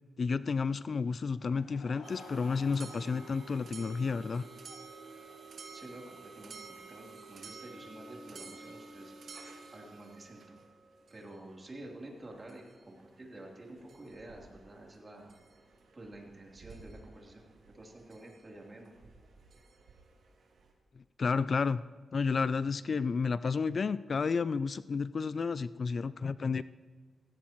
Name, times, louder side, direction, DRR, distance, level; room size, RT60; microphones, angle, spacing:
voice 1, 0.2-4.4 21.2-21.8 22.1-26.6, left 5 dB, 50° left, 16 dB, 0.3 m, -31 dB
Laughter / Crowd, 1.4-5.9, left 4 dB, 85° left, 1.2 m, -55 dB
sound 1, 2.0-20.7, right 4 dB, 70° right, 2.4 m, -52 dB
voice 2, 5.7-9.1 9.7-10.5 11.1-15.3 15.9-18.9, right 1 dB, 35° right, -1 dB, 3.3 m, -49 dB
17.5 x 16.5 x 3.1 m, 1.5 s
cardioid pair, 90°, 0 cm